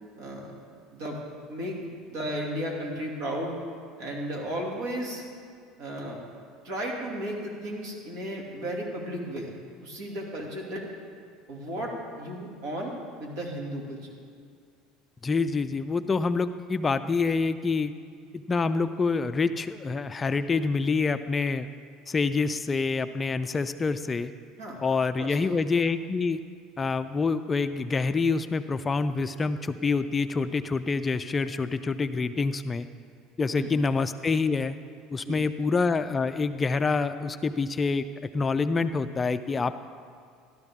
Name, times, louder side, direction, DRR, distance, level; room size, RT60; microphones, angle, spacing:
voice 1, 0.2-0.5 0.9-1.2 1.5-3.6 4.0-5.2 5.8-6.2 6.6-9.5 9.8-10.8 11.5-12.9 13.2-14.1 24.6-24.8 25.2-25.4 33.6-33.7 35.2-35.4, right 1 dB, 65° right, -1 dB, 2.5 m, -34 dB
voice 2, 15.2-17.9 18.3-21.7 22.1-24.3 24.8-26.4 26.8-32.9 33.4-34.8 35.1-38.0 38.3-39.9, left 4 dB, 20° left, 11 dB, 0.3 m, -26 dB
13.5 x 12.5 x 3.6 m, 2.2 s
supercardioid pair, 130°, 0 cm